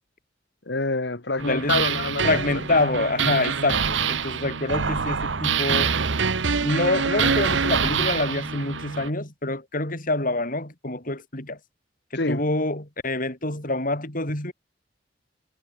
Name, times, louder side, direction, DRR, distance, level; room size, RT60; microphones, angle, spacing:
voice 1, 0.7-2.6 12.2-12.4, left 3 dB, 65° left, 2.0 m, -27 dB
voice 2, 1.4-1.9 2.2-5.9 6.6-11.6 12.1-14.5, left 2 dB, 50° left, 7.8 m, -26 dB
sound 1, 1.4-9.1, right 6 dB, 85° right, 1.2 m, -25 dB
head